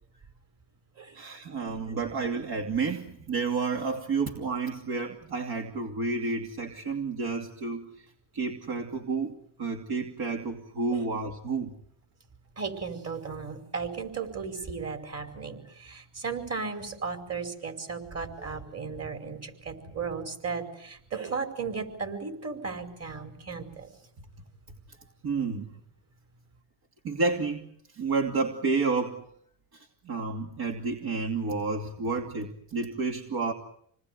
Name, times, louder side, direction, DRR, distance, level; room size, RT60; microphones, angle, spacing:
voice 1, 1.1-7.9 8.3-9.3 9.6-11.7 25.2-25.7 27.0-27.7 27.9-29.3 29.7-33.5, right 4 dB, 45° right, 4 dB, 2.8 m, -30 dB
voice 2, 12.6-23.9, right 5 dB, 30° right, 8 dB, 5.2 m, -35 dB
28.0 x 20.0 x 9.5 m, 0.69 s
cardioid pair, 110°, 49 cm